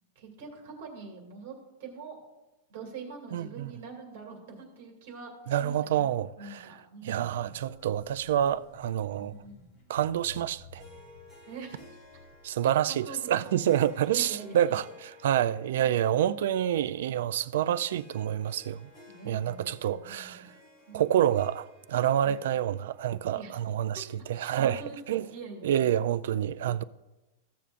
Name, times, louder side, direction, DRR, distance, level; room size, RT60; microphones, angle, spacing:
voice 1, 0.2-1.5 1.8-2.2 2.7-6.0 6.4-7.3 9.2-9.6 11.5-11.8 12.9-13.6 14.0-14.6 19.1-20.5 20.9-21.1 23.3-23.6 23.9-25.9, right 4 dB, 45° right, 2.3 m, -44 dB
voice 2, 3.3-3.7 5.5-6.6 7.0-9.3 9.9-10.8 12.4-14.8 15.2-18.9 19.3-20.4 20.9-24.8 25.1-25.2 25.6-26.8, right 10 dB, 65° right, 0.3 m, -27 dB
sound 1, 7.4-14.9, left 1 dB, 30° left, 1.3 m, -54 dB
Harp, 10.8-24.4, left 2 dB, 10° left, 1.8 m, -55 dB
15.0 x 6.9 x 2.5 m
supercardioid pair, 175°, 0 cm